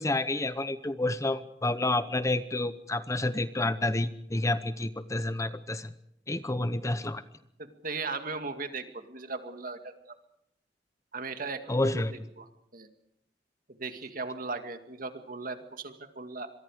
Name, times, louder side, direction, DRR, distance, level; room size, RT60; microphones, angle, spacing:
voice 1, 0.0-5.9 6.3-7.2 11.7-12.1, left 2 dB, 15° left, 13 dB, 0.7 m, -29 dB
voice 2, 7.6-10.1 11.1-12.0 12.4-12.5 12.7-12.9 13.8-16.5, right 3 dB, 50° right, 7 dB, 2.2 m, -37 dB
25.5 x 23.0 x 5.0 m, 0.78 s
head